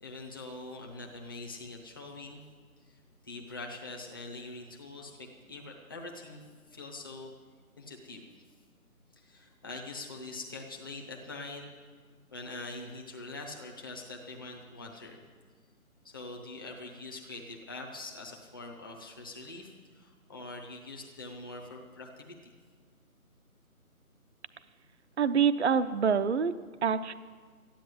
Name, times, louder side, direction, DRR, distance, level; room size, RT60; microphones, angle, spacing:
voice 1, 0.0-2.4 2.8-7.3 7.8-8.4 9.2-11.7 12.3-15.2 16.0-22.4, left 2 dB, 15° left, 0 dB, 0.9 m, -44 dB
voice 2, 25.2-26.5 26.8-27.1, right 6 dB, 50° right, 12 dB, 0.6 m, -26 dB
13.5 x 10.0 x 7.7 m, 1.5 s
figure-of-eight pair, 160°, 44 cm